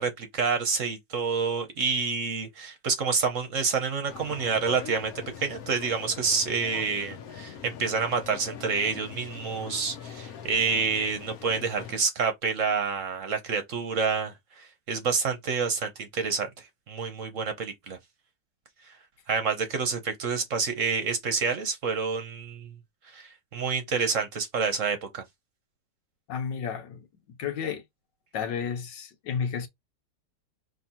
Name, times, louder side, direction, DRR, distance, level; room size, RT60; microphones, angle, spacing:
voice 1, 0.0-5.1 5.4-16.5 16.9-18.0 19.3-22.7 23.1-25.2, right 5 dB, 55° right, 1.1 m, -28 dB
sound 1, 4.1-12.0, left 8 dB, 60° left, 1.2 m, -42 dB
voice 2, 26.3-27.1 27.4-27.8 28.3-29.7, left 7 dB, 85° left, 1.6 m, -32 dB
5.0 x 3.3 x 2.9 m
omnidirectional pair, 1.9 m